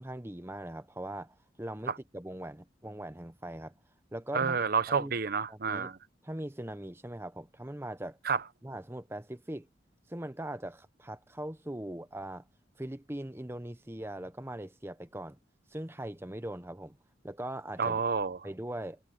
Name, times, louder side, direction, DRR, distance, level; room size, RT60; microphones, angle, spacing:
voice 1, 0.0-3.7 4.1-4.6 4.9-5.1 5.5-5.9 6.2-8.2 8.6-9.7 10.1-12.5 12.8-15.4 15.7-17.0 17.2-18.0 18.4-19.0, right 1 dB, 10° right, 0.9 m, -40 dB
voice 2, 4.3-6.0 8.2-8.4 17.8-18.4, right 5 dB, 50° right, 0.7 m, -29 dB
head